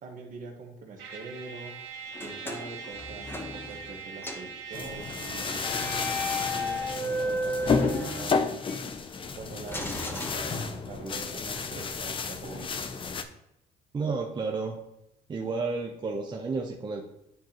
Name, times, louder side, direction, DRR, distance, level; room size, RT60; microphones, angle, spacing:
voice 1, 0.0-12.7, right 4 dB, 50° right, 2 dB, 1.5 m, -44 dB
Trumpet, 1.0-7.1, right 6 dB, 90° right, 1.6 m, -42 dB
sound 1, 2.1-4.0 4.2-4.6 5.6-8.8 9.7-11.1, left 1 dB, 15° left, 1.0 m, -34 dB
sound 2, 4.7-13.2, left 5 dB, 30° left, 0.6 m, -32 dB
voice 2, 13.9-14.8 15.3-17.0, right 4 dB, 25° right, 1 dB, 0.7 m, -31 dB
10.5 x 3.8 x 3.0 m, 0.84 s
cardioid pair, 110°, 17 cm